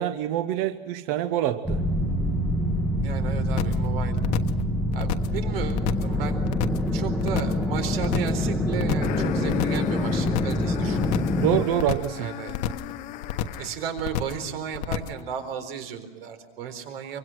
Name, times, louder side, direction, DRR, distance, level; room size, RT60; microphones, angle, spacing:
voice 1, 0.0-1.8 11.2-12.3, right 12 dB, 35° right, 10 dB, 0.8 m, -26 dB
sound 1, 1.6-11.6, left 1 dB, ahead, 1.0 m, -26 dB
voice 2, 3.0-4.2 4.9-6.4 6.9-11.0 12.2-12.6 13.6-17.2, right 7 dB, 80° right, 8 dB, 4.2 m, -34 dB
Worlds Most Annoying Noise, 3.6-3.9 4.2-4.6 4.9-5.4 5.7-6.1 6.4-6.9 7.2-7.6 7.9-8.4 8.7-9.2 9.5-9.9 10.2-10.6 10.9-11.4 11.7-12.2 12.5-12.9 13.2-13.7 14.0-14.4 14.7-15.2, left 11 dB, 45° left, 1.2 m, -29 dB
sound 2, 9.0-13.9, left 13 dB, 25° left, 0.7 m, -34 dB
25.0 x 24.0 x 6.3 m, 1.3 s
supercardioid pair, 170°, 29 cm